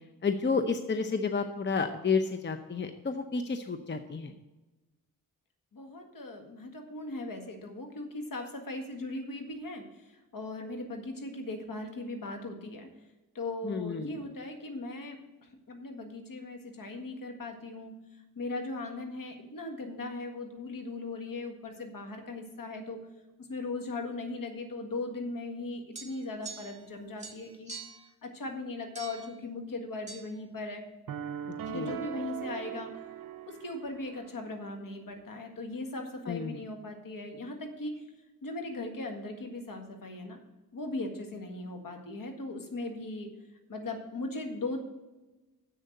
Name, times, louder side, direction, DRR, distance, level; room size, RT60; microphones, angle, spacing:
voice 1, 0.2-4.3 13.6-14.2 31.7-32.0 36.3-36.6, left 5 dB, 30° left, 7 dB, 0.7 m, -31 dB
voice 2, 5.7-9.8 10.3-12.9 13.4-15.2 15.7-17.9 18.4-23.0 23.5-27.7 28.2-30.8 31.7-32.9 33.5-37.9 38.4-40.4 40.7-43.3 43.7-44.8, left 2 dB, 60° left, 4 dB, 1.8 m, -38 dB
sound 1, 26.0-26.9 27.2-28.1 29.0-29.3 30.1-30.2, right 4 dB, 20° right, 1.8 m, -45 dB
sound 2, 31.1-34.3, right 9 dB, 60° right, 0.7 m, -40 dB
7.7 x 6.4 x 7.9 m, 1.1 s
cardioid pair, 60°, 38 cm